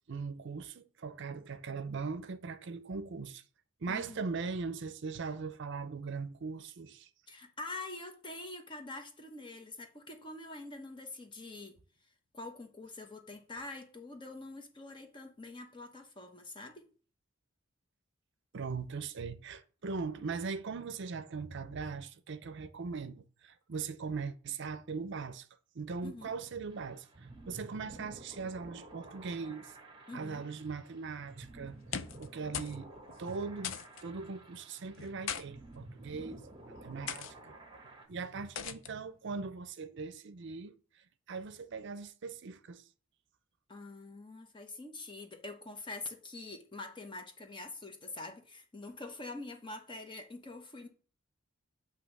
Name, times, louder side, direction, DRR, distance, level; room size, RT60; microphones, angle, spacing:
voice 1, 0.1-3.4 3.8-7.1 18.5-25.5 25.7-29.7 30.1-36.4 36.7-37.6 38.1-40.7 41.3-42.8, right 4 dB, 60° right, 0.5 m, -40 dB
voice 2, 3.9-4.2 7.3-11.8 12.3-16.9 26.0-26.3 30.1-30.4 43.7-50.9, left 2 dB, 25° left, 0.9 m, -45 dB
sound 1, 26.7-38.1, right 2 dB, 25° right, 1.1 m, -52 dB
sound 2, 31.7-32.3 32.5-32.8 33.1-33.2 33.6-34.0 35.0-35.4 36.2-36.4 37.1-37.3 38.6-38.9, left 8 dB, 65° left, 0.5 m, -39 dB
8.3 x 2.9 x 5.9 m
head